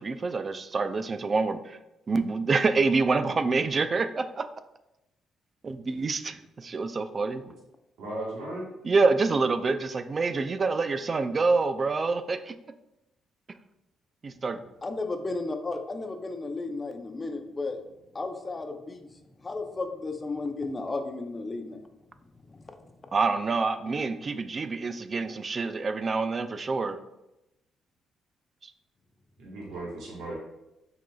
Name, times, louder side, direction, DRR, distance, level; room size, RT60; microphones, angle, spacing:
voice 1, 0.0-1.8 2.1-4.5 5.6-7.4 8.8-12.5 14.2-14.6 23.1-27.0 28.6-28.7, right 4 dB, 35° right, 10 dB, 0.4 m, -27 dB
voice 2, 8.0-8.7 29.4-30.4, right 1 dB, 80° right, -5 dB, 1.3 m, -36 dB
voice 3, 14.8-17.8 18.1-19.1 19.4-21.8 22.5-22.9, left 3 dB, 25° left, 6 dB, 0.6 m, -34 dB
5.9 x 3.9 x 2.3 m, 0.91 s
cardioid pair, 90°, 0 cm